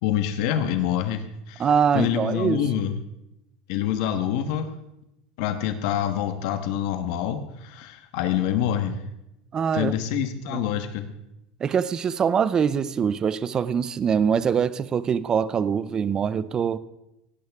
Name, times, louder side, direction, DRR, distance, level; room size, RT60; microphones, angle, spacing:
voice 1, 0.0-1.7 1.9-2.9 3.7-4.7 5.4-9.0 9.7-11.1, left 10 dB, 60° left, 1.3 m, -26 dB
voice 2, 1.6-2.6 9.5-9.9 10.5-10.6 11.6-16.8, right 7 dB, 20° right, 0.5 m, -23 dB
17.5 x 17.0 x 3.6 m
cardioid pair, 175°, 4 cm